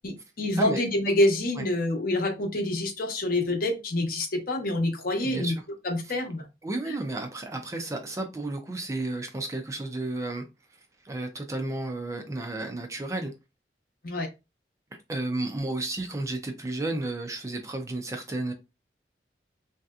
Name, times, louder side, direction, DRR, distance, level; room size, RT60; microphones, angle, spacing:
voice 1, 0.4-5.5 5.8-6.4 6.9-7.0 14.0-14.3, left 1 dB, 55° left, 0.8 m, -26 dB
voice 2, 5.2-5.5 6.6-10.4 11.0-13.3 15.1-18.5, right 2 dB, 20° right, 0.4 m, -32 dB
3.2 x 2.7 x 2.3 m
head